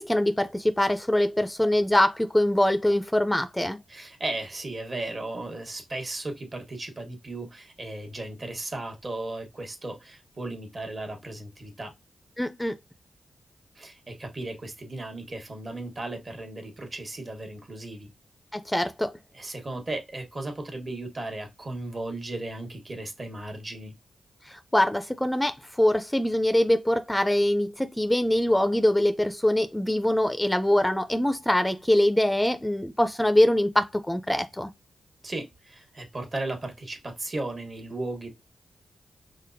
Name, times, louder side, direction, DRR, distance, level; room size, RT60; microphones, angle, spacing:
voice 1, 0.0-3.8 12.4-12.7 18.5-19.1 24.5-34.7, left 1 dB, 10° left, 0.4 m, -23 dB
voice 2, 3.9-11.9 13.7-18.1 19.3-23.9 35.2-38.3, right 2 dB, 45° right, 1.3 m, -36 dB
5.1 x 2.1 x 2.6 m
supercardioid pair, 40°, 0 cm